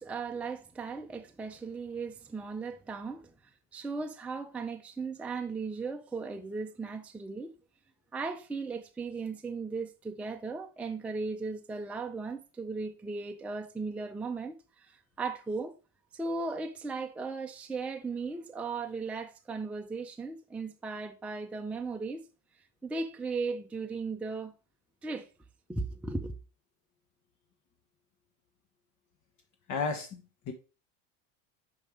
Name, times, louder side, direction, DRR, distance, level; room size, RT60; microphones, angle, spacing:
voice 1, 0.0-3.3 3.7-7.5 8.1-15.8 16.1-22.2 22.8-24.5 25.0-25.3 25.7-26.3, right 4 dB, 5° right, 0.5 m, -37 dB
voice 2, 29.7-30.5, left 4 dB, 45° left, 1.2 m, -33 dB
5.4 x 5.2 x 4.7 m
supercardioid pair, 115°, 42 cm